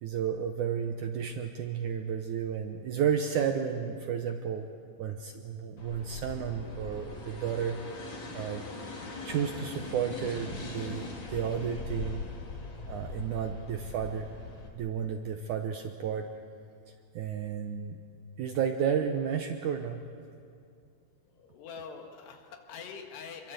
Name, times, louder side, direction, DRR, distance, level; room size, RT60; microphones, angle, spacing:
voice 1, 0.0-4.7 5.0-7.8 8.3-8.7 9.3-12.3 12.9-14.3 14.8-16.3 17.2-18.0 18.4-20.0, right 8 dB, 75° right, 5 dB, 1.9 m, -32 dB
sound 1, 5.8-14.7, left 3 dB, 35° left, 2.4 m, -41 dB
voice 2, 21.3-23.5, left 6 dB, 85° left, 4 dB, 4.0 m, -44 dB
27.0 x 22.5 x 8.1 m, 2.4 s
omnidirectional pair, 4.6 m